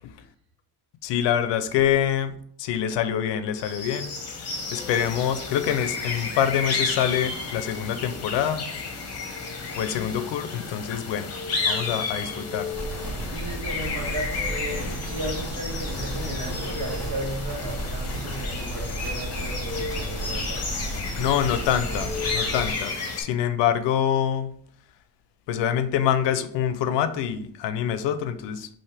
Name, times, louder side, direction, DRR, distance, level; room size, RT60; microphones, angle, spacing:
voice 1, 1.0-8.6 9.8-11.3 11.7-12.7 21.2-24.5 25.5-28.7, left 9 dB, 85° left, 12 dB, 0.6 m, -25 dB
sound 1, 3.6-23.2, left 4 dB, 35° left, 0.9 m, -32 dB
sound 2, 12.7-22.7, right 1 dB, 5° left, 2.0 m, -33 dB
voice 2, 13.3-20.6, right 1 dB, 55° right, 0 dB, 1.4 m, -35 dB
5.6 x 2.7 x 3.4 m, 0.62 s
cardioid pair, 170°, 42 cm